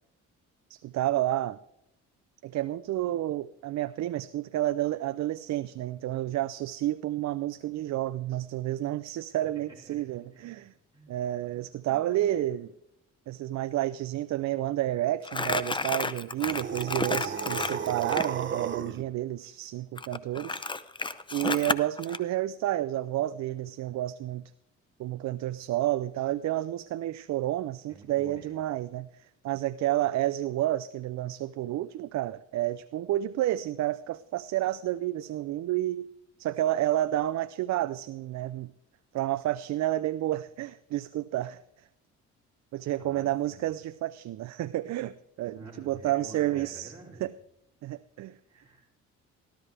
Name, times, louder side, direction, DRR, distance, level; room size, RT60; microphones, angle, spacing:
voice 1, 0.7-1.6 2.4-10.7 11.1-12.7 13.3-20.6 21.3-24.5 25.0-36.1 36.4-38.7 39.1-41.6 42.7-46.9 47.2-47.3 47.8-48.4, right 14 dB, 65° right, 13 dB, 0.5 m, -30 dB
voice 2, 11.5-12.5 17.1-17.8 27.9-28.5 43.0-43.7 45.5-47.3 48.5-48.9, right 3 dB, 15° right, -6 dB, 3.3 m, -49 dB
Crumpling crinkling, 15.2-18.3 20.0-22.2, left 3 dB, 15° left, 0.6 m, -31 dB
sound 1, 16.4-19.0, right 7 dB, 40° right, 0.9 m, -34 dB
14.5 x 12.5 x 3.4 m, 0.81 s
cardioid pair, 90°, 30 cm